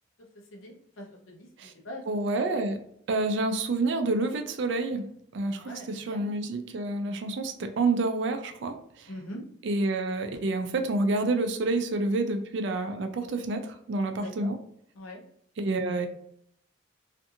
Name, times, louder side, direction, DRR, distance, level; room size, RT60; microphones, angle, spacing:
voice 1, 0.5-2.0 5.6-6.3 9.1-9.4 14.2-14.5 14.9-15.2, left 1 dB, 75° left, -1 dB, 0.7 m, -43 dB
voice 2, 2.1-2.8 3.1-5.0 5.3-9.1 9.6-14.6 15.6-16.1, right 2 dB, 60° right, 7 dB, 0.4 m, -28 dB
2.5 x 2.4 x 2.6 m, 0.68 s
head